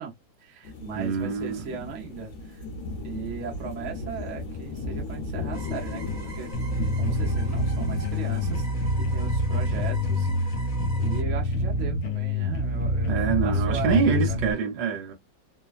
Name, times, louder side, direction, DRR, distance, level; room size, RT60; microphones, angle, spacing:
voice 1, 0.0-2.6 3.0-13.1 13.4-14.0 14.3-14.4, right 6 dB, 55° right, 0.8 m, -38 dB
sound 1, 0.6-8.6, left 2 dB, 50° left, 1.0 m, -35 dB
voice 2, 1.0-1.6 13.1-15.1, right 6 dB, 70° right, 1.4 m, -25 dB
sound 2, 5.5-11.2, right 1 dB, 5° left, 1.1 m, -44 dB
sound 3, 6.5-14.5, left 1 dB, 80° left, 1.3 m, -26 dB
3.2 x 2.2 x 2.3 m
omnidirectional pair, 2.1 m